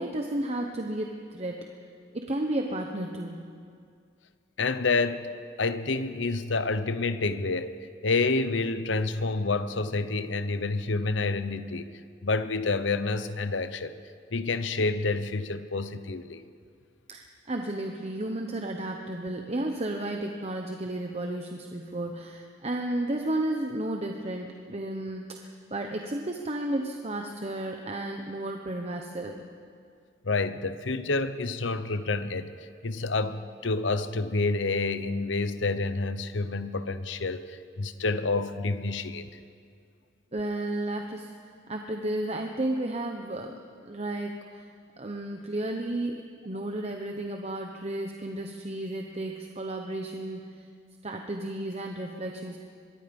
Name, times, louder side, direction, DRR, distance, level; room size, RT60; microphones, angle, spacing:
voice 1, 0.0-1.6 2.1-3.5 17.1-29.5 40.3-41.3 41.7-43.5 43.9-44.7 45.0-50.7 51.0-52.6, right 1 dB, 35° right, 3 dB, 1.1 m, -33 dB
voice 2, 4.6-5.3 5.6-7.8 8.0-11.9 12.2-14.0 14.3-16.4 30.2-39.3, left 3 dB, 80° left, 12 dB, 1.0 m, -28 dB
24.5 x 21.5 x 5.4 m, 2.3 s
head